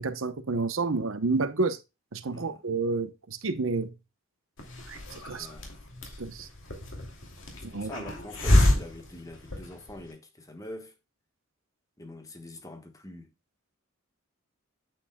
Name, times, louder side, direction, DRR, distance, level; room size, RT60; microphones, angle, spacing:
voice 1, 0.0-1.8 2.1-3.9 4.9-5.5 6.2-6.5 7.6-8.0, right 3 dB, 65° right, 0.9 m, -30 dB
Hiss, 4.6-10.1, left 1 dB, 60° left, 2.7 m, -28 dB
voice 2, 5.3-5.7 7.5-10.9 12.0-13.3, left 1 dB, 15° left, 1.2 m, -44 dB
8.9 x 8.1 x 2.2 m
head